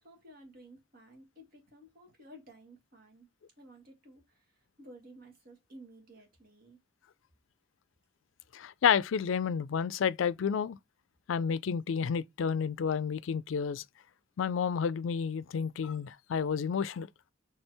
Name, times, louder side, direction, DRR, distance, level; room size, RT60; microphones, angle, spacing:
voice 1, 0.0-3.3 3.6-4.5 4.8-6.8, right 1 dB, 50° right, 1.7 m, -54 dB
voice 2, 8.5-10.8 11.3-13.8 14.4-17.1, left 7 dB, 85° left, 0.4 m, -30 dB
4.4 x 3.3 x 3.3 m
head